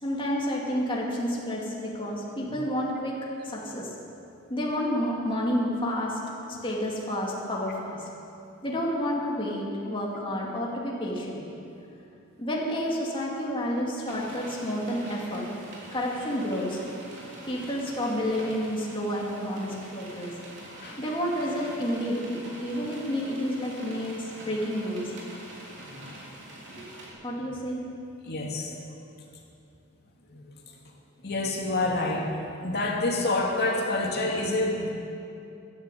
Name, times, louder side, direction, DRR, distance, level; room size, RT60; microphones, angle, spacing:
voice 1, 0.0-3.2 3.4-3.9 4.5-6.2 6.5-8.1 8.6-11.4 12.4-15.5 15.9-16.8 17.5-20.3 21.0-25.1 26.7-26.8 27.2-27.8, equal, 25° left, -3 dB, 2.5 m, -30 dB
sound 1, 14.1-27.1, right 1 dB, 60° right, 3.4 m, -45 dB
voice 2, 28.2-28.8 30.3-30.5 31.2-32.3 32.6-34.9, left 2 dB, 50° left, -1 dB, 2.4 m, -27 dB
14.5 x 10.5 x 8.5 m, 2.7 s
head